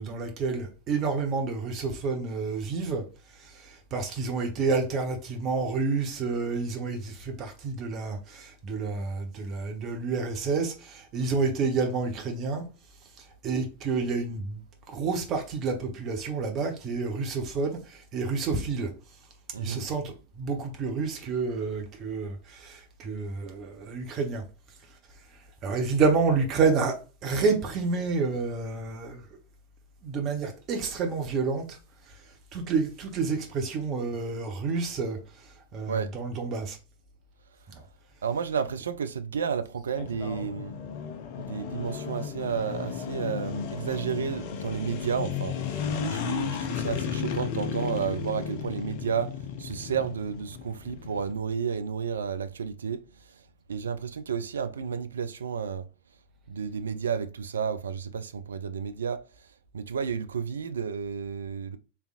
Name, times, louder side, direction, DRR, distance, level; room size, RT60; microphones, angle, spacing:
voice 1, 0.0-3.1 3.3-12.6 13.2-14.6 14.9-18.9 19.6-24.4 25.6-29.3 30.0-31.8 32.1-32.2 32.5-36.8 37.7-37.8, right 4 dB, 35° right, 0.9 m, -29 dB
voice 2, 19.5-19.9 35.9-36.1 38.2-40.8 41.4-53.4 53.7-55.9 56.5-59.5 59.7-61.8, right 6 dB, 70° right, 0.3 m, -32 dB
sound 1, 40.0-51.3, left 7 dB, 45° left, 0.5 m, -34 dB
3.4 x 3.3 x 2.4 m
figure-of-eight pair, 90°, 0 cm